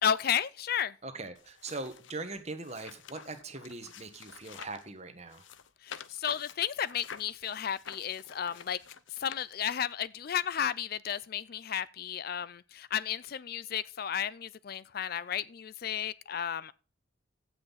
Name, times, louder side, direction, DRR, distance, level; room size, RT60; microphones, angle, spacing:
voice 1, 0.0-0.9 5.8-8.8 9.2-16.7, left 9 dB, 50° left, 0.4 m, -33 dB
voice 2, 1.0-5.4, right 3 dB, 35° right, 1.5 m, -41 dB
sound 1, 1.3-4.9 5.3-9.9 10.6-10.7, left 7 dB, 70° left, 0.8 m, -49 dB
15.5 x 6.2 x 4.0 m
head